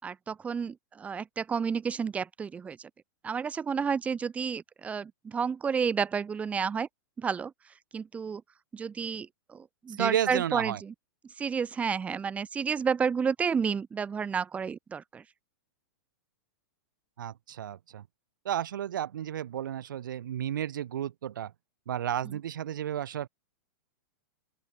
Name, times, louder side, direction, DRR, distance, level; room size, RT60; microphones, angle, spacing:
voice 1, 0.0-2.9 3.2-6.9 7.2-7.5 7.9-8.4 8.7-10.9 11.4-15.2, right 6 dB, 15° right, 5.7 m, -31 dB
voice 2, 10.0-10.8 17.2-18.0 18.5-21.5 21.9-23.3, right 10 dB, 80° right, 5.3 m, -32 dB
open air
supercardioid pair, 160°, 11 cm